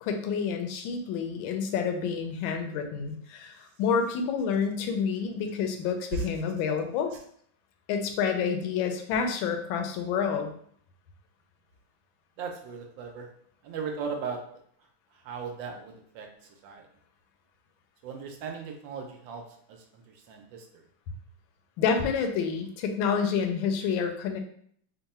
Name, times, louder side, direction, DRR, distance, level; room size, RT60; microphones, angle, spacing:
voice 1, 0.0-7.1 7.9-10.5 21.8-24.4, left 6 dB, 80° left, 5 dB, 1.3 m, -28 dB
voice 2, 12.4-13.3 13.6-14.4 15.2-16.3 16.6-16.9 18.0-19.4 19.7-20.6, right 5 dB, 75° right, 4 dB, 1.3 m, -37 dB
3.7 x 2.2 x 4.1 m, 0.63 s
omnidirectional pair, 2.2 m